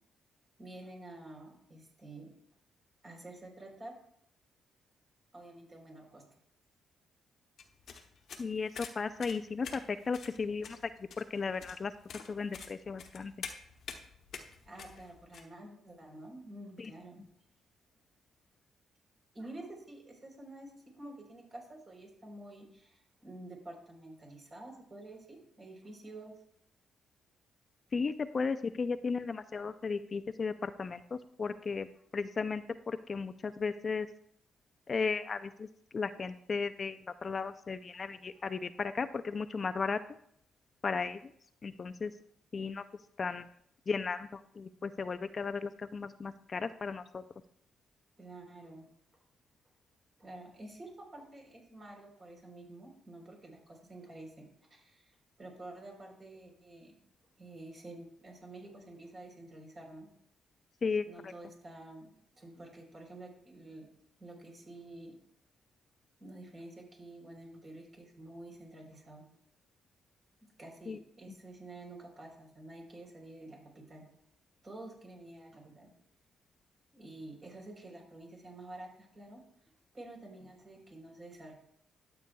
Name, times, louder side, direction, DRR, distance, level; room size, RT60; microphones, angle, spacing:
voice 1, 0.6-2.3 3.0-3.9 5.3-6.2 14.7-17.2 19.3-26.3 37.9-38.1 48.2-48.9 50.2-56.9 57.4-60.1 61.1-63.9 64.2-65.1 66.2-69.3 70.6-74.0 74.6-75.9 76.9-79.4 79.9-81.5, right 2 dB, 35° right, 1 dB, 3.7 m, -49 dB
sound 1, 7.6-15.4, left 6 dB, 65° left, 1.1 m, -47 dB
voice 2, 8.4-10.9 11.2-11.9 12.3-13.3 16.8-16.9 27.9-31.9 32.1-34.1 34.9-35.7 35.9-40.0 40.8-41.2 41.6-42.1 42.5-42.8 43.2-43.5 43.9-47.2 60.8-61.3 70.9-71.0, left 5 dB, 40° left, 11 dB, 0.4 m, -35 dB
12.5 x 8.2 x 2.3 m, 0.68 s
cardioid pair, 90°, 0 cm